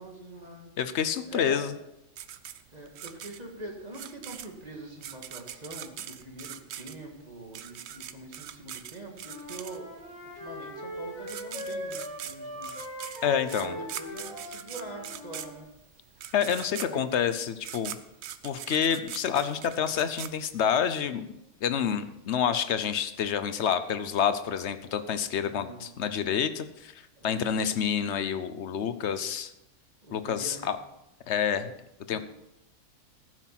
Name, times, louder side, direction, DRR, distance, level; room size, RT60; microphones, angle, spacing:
voice 1, 0.0-0.7 1.3-1.7 2.7-13.1 13.4-15.7 16.8-17.0 25.4-25.9 27.2-27.5 30.0-30.7 32.1-32.2, right 1 dB, 30° right, 1 dB, 2.0 m, -44 dB
voice 2, 0.8-1.7 13.2-13.8 16.3-18.0 18.4-21.3 21.6-26.9 27.2-29.5 30.1-30.8 31.3-31.7 32.1-32.2, left 8 dB, 65° left, 11 dB, 1.0 m, -28 dB
sound 1, 2.2-10.1 10.9-11.0 11.2-20.9, right 10 dB, 65° right, 0.8 m, -42 dB
Wind instrument woodwind instrument, 9.2-15.5, equal, 15° left, 3.0 m, -40 dB
15.0 x 6.4 x 5.8 m, 0.88 s
omnidirectional pair, 1.3 m